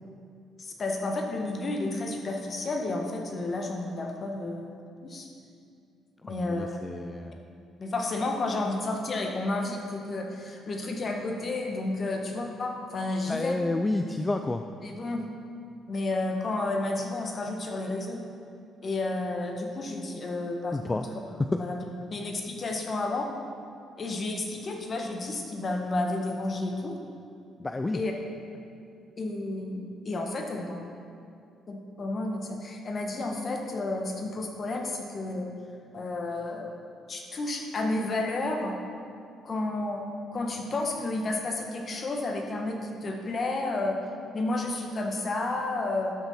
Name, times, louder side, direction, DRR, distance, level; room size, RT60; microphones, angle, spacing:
voice 1, 0.6-4.7 5.0-5.3 6.2-6.8 7.8-13.6 14.8-15.3 15.9-18.2 18.8-21.1 21.5-21.8 22.1-23.3 24.0-27.0 27.9-28.1 29.2-30.9 31.7-35.5 35.9-36.8 37.1-38.8 39.4-44.0 44.3-46.2, left 2 dB, 45° left, 2 dB, 1.4 m, -31 dB
voice 2, 6.3-7.4 13.3-14.6 20.7-21.1 27.6-28.0, left 2 dB, 25° left, 7 dB, 0.4 m, -30 dB
11.5 x 6.4 x 4.3 m, 2.4 s
hypercardioid pair, 50°, 0 cm